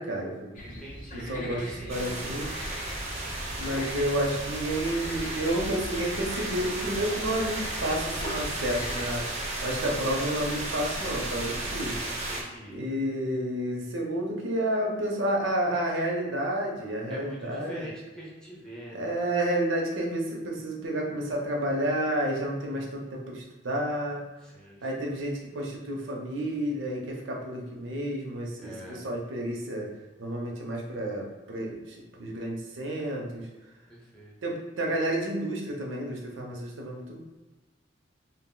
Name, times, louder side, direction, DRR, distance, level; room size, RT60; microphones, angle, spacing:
voice 1, 0.0-0.8 1.1-1.6 1.9-2.5 3.5-12.0 12.7-17.9 18.9-24.2 24.8-29.9 30.2-33.5 34.4-37.2, right 1 dB, 75° right, 0 dB, 0.6 m, -30 dB
sound 1, 0.5-9.2, equal, 45° left, 0.5 m, -41 dB
voice 2, 0.6-2.4 3.6-4.1 12.1-12.8 17.1-19.2 24.4-25.1 28.6-29.1 33.9-34.3, right 1 dB, 5° left, -5 dB, 0.7 m, -44 dB
sound 2, 1.9-12.4, right 2 dB, 35° right, 0.5 m, -34 dB
2.4 x 2.0 x 3.7 m, 1.2 s
head